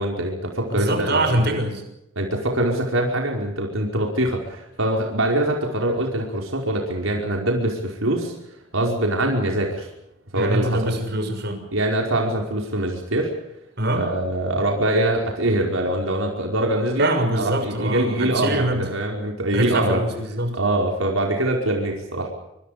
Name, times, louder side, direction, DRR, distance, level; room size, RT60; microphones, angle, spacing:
voice 1, 0.0-1.3 2.1-8.3 8.7-9.9 10.3-10.9 11.7-13.3 13.9-17.1 17.4-20.0 20.5-22.3, right 1 dB, 85° right, 1 dB, 5.2 m, -23 dB
voice 2, 0.7-1.8 10.3-11.6 13.8-14.1 17.0-18.9 19.5-20.6, right 1 dB, 50° right, 5 dB, 6.5 m, -23 dB
27.5 x 25.5 x 5.3 m, 0.85 s
head